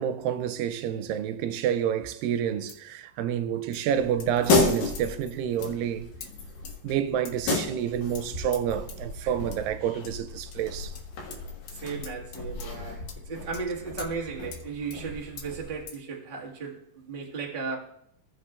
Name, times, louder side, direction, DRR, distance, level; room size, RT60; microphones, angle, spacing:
voice 1, 0.0-6.1 6.8-10.9, right 9 dB, 85° right, 2.3 m, -29 dB
sound 1, 2.7-2.9 3.7-3.9 4.2-4.7 5.0-5.1 5.6-5.7 6.2-6.3 6.7-7.0 7.3-7.4 8.2-8.3 8.5-8.6 8.9-9.0 9.5-9.6 10.0-10.1 10.5-10.6 11.0-11.1 11.3-11.4 11.7-11.8 12.0-12.7 13.1-13.2 13.5-13.7 14.0-14.1 14.5-14.6 14.9-15.0 15.4-15.5 15.9-16.0, left 7 dB, 90° left, 2.7 m, -44 dB
sound 2, 3.9-15.8, left 3 dB, 70° left, 3.1 m, -33 dB
voice 2, 11.7-17.8, right 5 dB, 35° right, 0.8 m, -35 dB
15.5 x 7.8 x 2.4 m
omnidirectional pair, 3.9 m